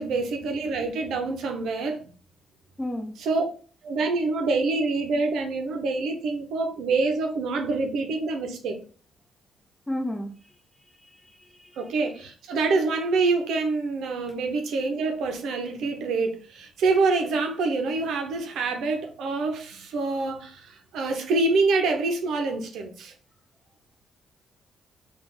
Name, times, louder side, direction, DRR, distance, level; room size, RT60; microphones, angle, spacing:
voice 1, 0.0-2.0 3.2-3.4 3.8-8.8 11.8-23.1, right 3 dB, 75° right, 0.7 m, -26 dB
voice 2, 2.8-3.1 9.9-10.3 11.0-11.9, left 1 dB, 15° left, 1.2 m, -33 dB
3.7 x 2.5 x 3.9 m
supercardioid pair, 50°, 0 cm